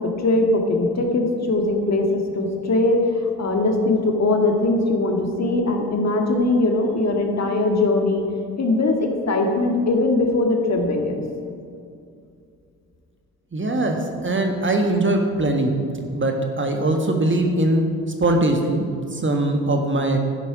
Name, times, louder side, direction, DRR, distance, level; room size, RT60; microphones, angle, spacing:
voice 1, 0.0-3.0 3.4-8.3 8.6-11.2, left 2 dB, 35° left, 2 dB, 2.1 m, -21 dB
voice 2, 13.5-15.7 16.1-17.9 18.2-20.2, right 2 dB, 25° right, 3 dB, 1.6 m, -21 dB
12.5 x 10.5 x 4.9 m, 2.4 s
figure-of-eight pair, 45°, 45 cm